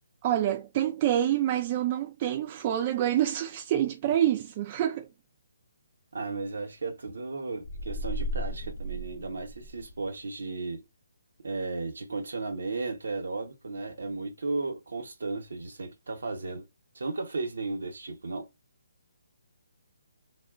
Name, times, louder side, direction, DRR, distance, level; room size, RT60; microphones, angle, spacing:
voice 1, 0.2-5.1, right 11 dB, 30° right, 0.3 m, -27 dB
voice 2, 6.1-10.8 11.4-16.7 16.9-18.5, right 3 dB, 75° right, 0.8 m, -35 dB
sound 1, 7.6-10.1, equal, 45° left, 0.6 m, -35 dB
2.9 x 2.2 x 2.3 m
hypercardioid pair, 155°, 0 cm